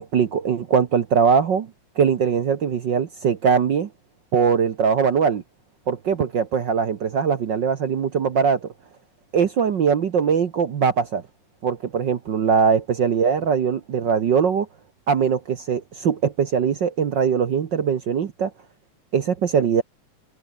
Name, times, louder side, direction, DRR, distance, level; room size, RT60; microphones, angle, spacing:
voice 1, 0.0-1.7 2.0-3.9 4.3-5.4 5.9-8.7 9.3-11.2 11.6-14.7 15.1-18.5 19.1-19.8, right 6 dB, 60° right, 1.2 m, -21 dB
omnidirectional pair, 3.5 m